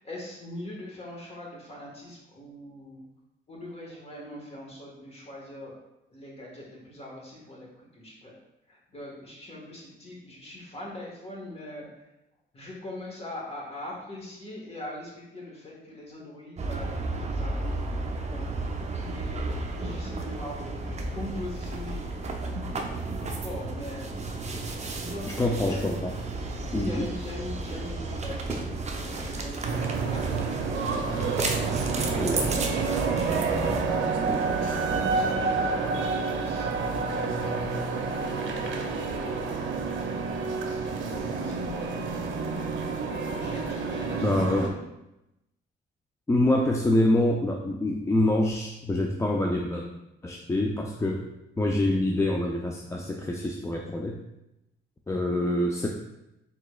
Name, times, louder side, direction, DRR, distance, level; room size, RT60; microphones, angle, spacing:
voice 1, 0.0-3.0 3.5-5.8 6.1-8.3 8.7-11.9 12.5-18.5 19.1-22.1 23.2-24.1 24.9-26.0 26.7-29.6 30.0-32.0 32.6-33.7 34.3-37.4 37.7-39.4 40.7-41.9 43.3-44.9, left 1 dB, 30° left, -3 dB, 1.5 m, -42 dB
sound 1, 16.6-33.8, right 2 dB, 35° right, 0.6 m, -33 dB
voice 2, 25.4-26.1 26.7-27.1 32.2-32.5 44.2-44.7 46.3-49.8 50.2-51.2 51.6-54.2 55.1-55.9, left 1 dB, 15° left, 0 dB, 0.4 m, -25 dB
sound 2, 28.3-35.8, right 1 dB, 10° right, 1.0 m, -41 dB
sound 3, 29.6-44.7, right 4 dB, 75° right, 0.6 m, -29 dB
4.6 x 3.9 x 2.4 m, 0.90 s
cardioid pair, 90°, 20 cm